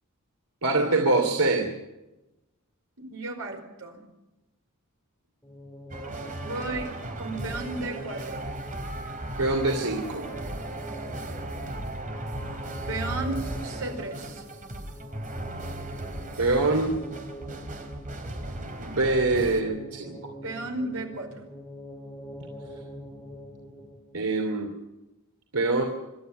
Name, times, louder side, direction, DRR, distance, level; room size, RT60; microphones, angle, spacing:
voice 1, 0.6-1.7 9.4-10.2 16.4-17.0 18.8-20.3 24.1-24.7 25.5-25.8, right 2 dB, 85° right, 2 dB, 2.8 m, -24 dB
voice 2, 3.0-4.0 6.4-8.5 12.9-14.4 20.4-21.4, right 2 dB, 70° right, 3 dB, 4.9 m, -34 dB
sound 1, 5.4-24.2, equal, 10° left, 3.9 m, -44 dB
sound 2, 5.9-19.6, right 1 dB, 35° right, 3.0 m, -36 dB
27.0 x 13.0 x 9.2 m, 1.0 s
head